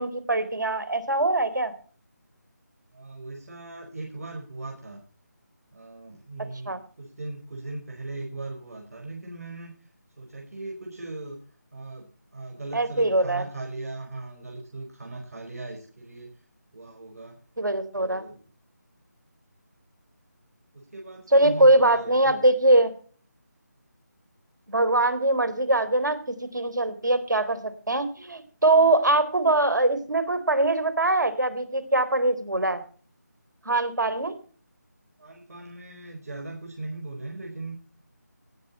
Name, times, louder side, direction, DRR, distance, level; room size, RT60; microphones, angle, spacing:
voice 1, 0.0-1.7 6.7-6.8 12.7-13.4 17.6-18.2 21.3-22.9 24.7-32.8 33.7-34.3, right 2 dB, 85° right, 12 dB, 3.8 m, -22 dB
voice 2, 2.9-5.0 5.7-9.7 10.2-11.4 11.7-12.1 12.3-16.3 16.7-17.3 17.9-18.4 20.9-22.3 35.2-37.7, right 2 dB, 55° right, 1 dB, 4.8 m, -38 dB
17.0 x 10.5 x 4.3 m, 0.41 s
figure-of-eight pair, 175°, 10 cm